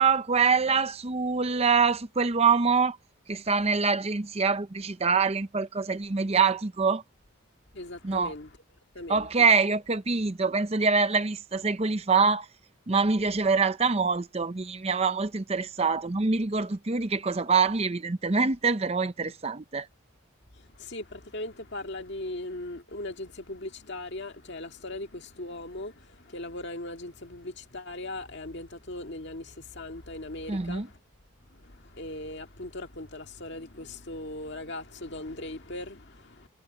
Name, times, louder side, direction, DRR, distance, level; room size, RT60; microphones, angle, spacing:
voice 1, 0.0-3.0 3.3-7.0 8.0-8.3 9.1-12.5 12.9-19.9 30.5-30.9, right 5 dB, 30° right, 0.6 m, -25 dB
voice 2, 7.7-8.5 8.9-9.5 20.5-31.0 31.5-36.5, left 2 dB, 55° left, 2.0 m, -39 dB
head